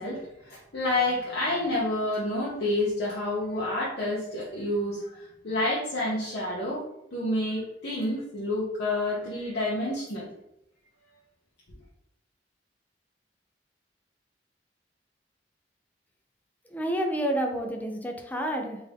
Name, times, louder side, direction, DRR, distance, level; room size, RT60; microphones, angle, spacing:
voice 1, 0.0-6.8 7.1-10.3, left 1 dB, 65° left, -7 dB, 0.8 m, -29 dB
voice 2, 16.7-18.8, right 1 dB, 10° left, 3 dB, 0.4 m, -29 dB
3.6 x 2.6 x 3.4 m, 0.82 s
head